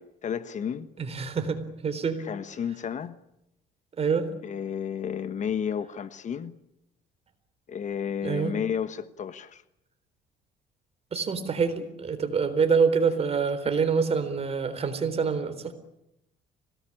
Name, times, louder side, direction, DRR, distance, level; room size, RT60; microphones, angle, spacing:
voice 1, 0.0-0.9 2.2-3.2 4.4-6.6 7.7-9.6, left 7 dB, 45° left, 1.3 m, -32 dB
voice 2, 1.0-2.2 4.0-4.3 8.2-8.5 11.1-15.7, right 5 dB, 35° right, 4.0 m, -26 dB
25.5 x 18.5 x 10.0 m
cardioid pair, 110°, 17 cm